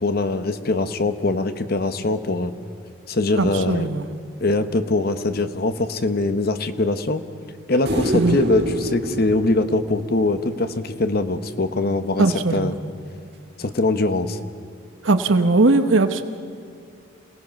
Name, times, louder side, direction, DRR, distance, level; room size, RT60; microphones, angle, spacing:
voice 1, 0.0-2.5 3.1-3.9 4.4-7.2 7.7-12.2 12.5-12.8 13.6-14.4, left 2 dB, 50° left, 10 dB, 0.9 m, -22 dB
voice 2, 3.4-4.0 8.0-8.4 12.2-12.7 15.0-16.2, right 3 dB, 75° right, 9 dB, 1.0 m, -19 dB
sound 1, 7.9-11.1 13.7-13.8, right 1 dB, 55° right, 1.7 m, -27 dB
27.5 x 17.5 x 5.9 m, 2.3 s
head